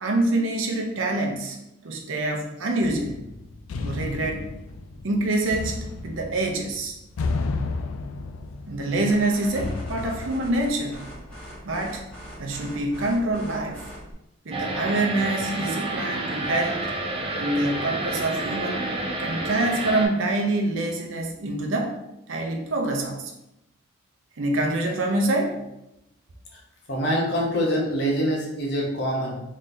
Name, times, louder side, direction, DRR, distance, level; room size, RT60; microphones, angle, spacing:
voice 1, 0.0-1.6 1.8-3.2 3.8-4.5 5.0-7.0 8.7-11.0 11.6-12.0 12.4-13.8 14.4-16.9 17.3-18.9 19.2-21.9 22.3-23.3 24.4-25.7, right 2 dB, 75° right, 2 dB, 0.6 m, -26 dB
sound 1, 2.8-11.5, left 3 dB, 85° left, 0.4 m, -33 dB
sound 2, 9.1-14.1, equal, 5° left, 1.1 m, -42 dB
sound 3, 14.5-20.1, right 2 dB, 25° right, 0.5 m, -29 dB
voice 2, 26.9-29.4, equal, 55° left, -2 dB, 0.8 m, -25 dB
3.8 x 3.2 x 2.7 m, 0.87 s
head